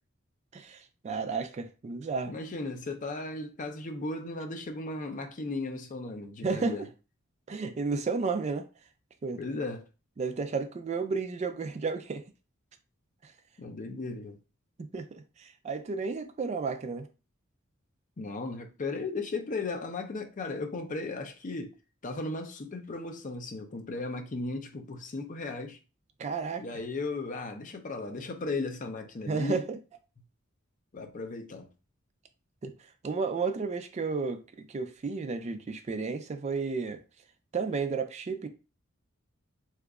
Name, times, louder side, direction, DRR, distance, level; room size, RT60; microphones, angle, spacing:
voice 1, 0.5-2.4 6.4-6.9 7.5-8.7 9.2-9.4 10.2-12.2 13.2-13.3 14.8-17.1 26.2-26.8 29.3-29.8 32.6-32.7 33.0-34.4 34.7-37.0 37.5-38.5, right 4 dB, 35° right, 0.3 m, -32 dB
voice 2, 2.3-6.8 9.4-9.8 13.6-14.4 18.2-21.7 22.0-25.8 26.6-29.6 30.9-31.7, left 3 dB, 40° left, 0.5 m, -36 dB
2.8 x 2.4 x 3.5 m
head